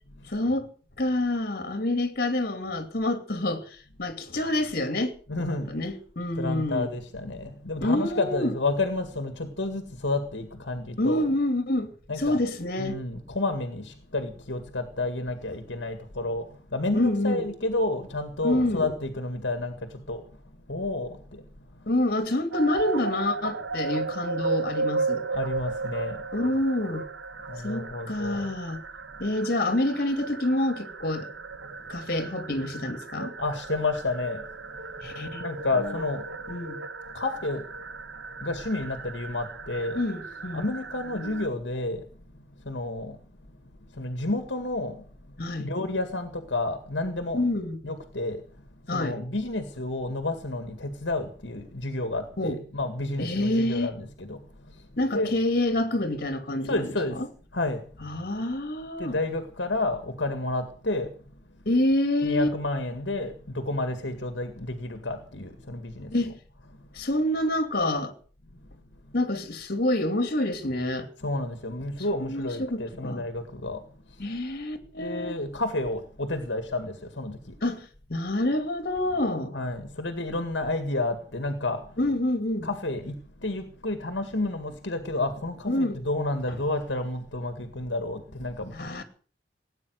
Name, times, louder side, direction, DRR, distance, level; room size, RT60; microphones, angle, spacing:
voice 1, 0.3-0.7 1.0-6.9 7.8-8.5 11.0-13.0 16.9-17.5 18.4-18.9 21.9-25.2 26.3-27.1 27.6-28.8 29.2-31.3 31.9-33.3 35.0-35.5 35.8-36.0 36.5-36.8 39.9-40.6 45.4-45.7 47.3-47.8 48.9-49.2 52.4-52.6 53.2-53.9 55.0-57.3 58.0-59.2 61.7-62.5 66.1-66.4 66.9-68.1 69.1-71.1 72.2-73.2 74.2-75.4 77.6-79.6 82.0-82.7 85.7-86.0 88.7-89.0, left 1 dB, 50° left, 2.6 m, -27 dB
voice 2, 5.3-5.8 6.4-11.3 12.1-12.4 12.8-20.4 20.7-21.4 21.7-21.9 25.3-26.2 27.5-28.5 31.6-31.7 33.4-34.4 35.0-35.1 35.4-36.3 37.1-40.0 40.5-42.1 42.3-43.2 43.5-43.6 43.9-47.4 47.8-48.4 48.8-55.3 56.6-57.2 57.5-57.9 59.0-61.1 62.2-66.1 66.7-66.8 69.1-69.2 71.2-74.3 75.0-77.6 79.5-82.0 82.6-89.0, left 2 dB, 70° left, 2.0 m, -31 dB
sound 1, 22.5-41.5, right 3 dB, 75° right, 1.2 m, -35 dB
18.0 x 9.3 x 7.9 m
head